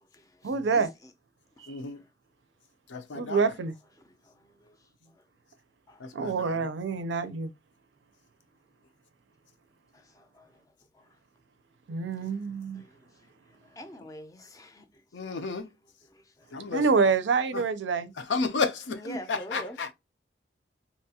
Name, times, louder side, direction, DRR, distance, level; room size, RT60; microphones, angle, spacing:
voice 1, 0.4-0.9 3.1-3.7 6.1-7.5 11.9-12.8 16.7-18.1, right 4 dB, 85° right, 0.4 m, -26 dB
voice 2, 1.7-2.0 2.9-3.5 6.0-6.6 15.1-15.7 16.5-16.8 17.5-17.6 18.2-19.9, left 4 dB, 85° left, 0.5 m, -32 dB
voice 3, 13.8-14.8 19.0-19.8, equal, 20° left, 0.4 m, -42 dB
2.9 x 2.3 x 2.8 m
head